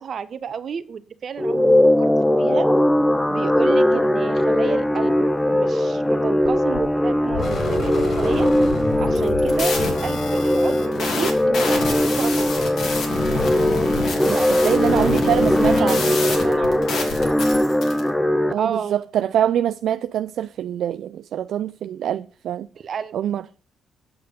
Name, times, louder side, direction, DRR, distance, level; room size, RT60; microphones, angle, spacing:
voice 1, 0.0-2.1 2.4-2.7 3.3-5.2 5.5-8.5 9.0-12.8 14.3-17.1 18.6-19.0 22.8-23.2, right 7 dB, 55° right, 0.9 m, -31 dB
sound 1, 1.4-18.5, left 1 dB, 10° left, 0.5 m, -20 dB
sound 2, 6.4-6.9 7.3-9.6, left 3 dB, 50° left, 3.6 m, -29 dB
sound 3, 9.0-18.0, left 3 dB, 70° left, 2.7 m, -28 dB
voice 2, 14.2-16.2 18.5-22.7 23.1-23.4, right 10 dB, 70° right, 0.3 m, -24 dB
8.5 x 6.6 x 5.1 m
cardioid pair, 90°, 0 cm